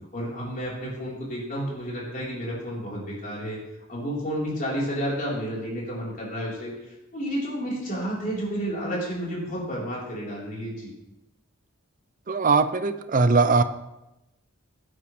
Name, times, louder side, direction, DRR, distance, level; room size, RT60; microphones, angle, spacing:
voice 1, 0.1-3.6 3.9-10.9, equal, 40° left, -5 dB, 4.2 m, -31 dB
voice 2, 12.3-13.6, right 4 dB, 40° right, 10 dB, 0.6 m, -20 dB
16.0 x 9.7 x 3.4 m, 0.94 s
head